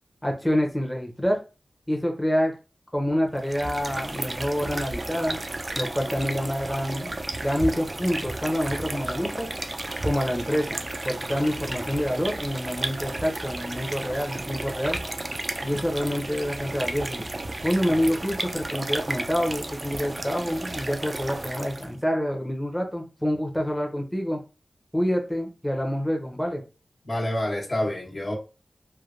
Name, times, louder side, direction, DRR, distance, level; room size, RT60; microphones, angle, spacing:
voice 1, 0.2-1.4 1.9-2.6 2.9-5.4 5.8-7.2 7.4-9.5 10.0-10.8 11.0-15.0 15.6-17.3 17.6-24.4 24.9-26.6, equal, 10° left, 0.7 m, -27 dB
sound 1, 3.3-22.0, right 2 dB, 45° right, 0.4 m, -33 dB
voice 2, 27.1-28.3, left 1 dB, 60° left, 1.1 m, -27 dB
3.2 x 2.2 x 2.4 m
wide cardioid pair, 65°, 0 cm